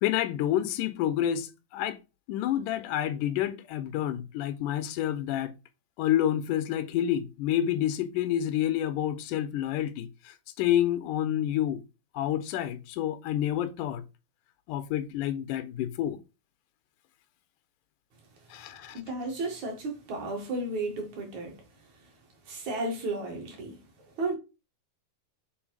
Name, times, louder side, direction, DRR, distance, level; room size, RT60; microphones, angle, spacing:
voice 1, 0.0-2.0 2.3-5.5 6.0-11.8 12.1-14.0 14.7-16.2 18.5-19.0, left 11 dB, 90° left, 2.3 m, -29 dB
voice 2, 18.9-21.6 22.5-24.4, right 2 dB, 65° right, 3.2 m, -33 dB
7.1 x 3.9 x 4.8 m
omnidirectional pair, 3.7 m